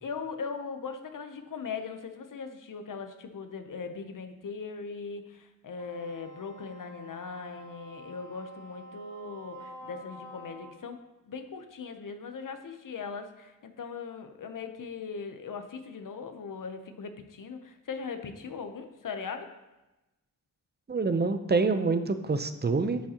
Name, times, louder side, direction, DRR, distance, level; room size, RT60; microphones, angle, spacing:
voice 1, 0.0-19.5, left 5 dB, 75° left, 7 dB, 0.8 m, -39 dB
Wind instrument woodwind instrument, 5.7-10.8, equal, 65° right, 2.3 m, -47 dB
voice 2, 20.9-23.0, right 4 dB, 30° right, 10 dB, 0.6 m, -26 dB
8.2 x 7.4 x 2.9 m, 1.0 s
cardioid pair, 55°, 32 cm